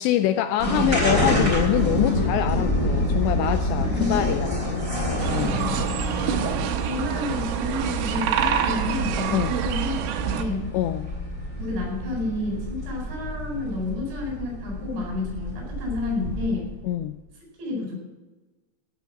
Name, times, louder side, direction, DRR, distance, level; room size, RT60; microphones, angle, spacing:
voice 1, 0.0-4.6 5.3-5.6 9.3-9.6 10.7-11.1 16.8-17.1, left 12 dB, 85° left, 9 dB, 2.5 m, -25 dB
sound 1, 0.6-16.8, left 1 dB, 10° right, 4.2 m, -28 dB
voice 2, 2.0-2.6 3.7-4.3 5.4-5.9 6.2-6.5 6.8-10.7 11.6-16.7 17.6-18.0, left 3 dB, 70° right, -1 dB, 7.1 m, -31 dB
sound 2, 5.2-10.4, right 9 dB, 85° right, 3.6 m, -26 dB
16.0 x 7.1 x 7.0 m, 1.2 s
omnidirectional pair, 5.6 m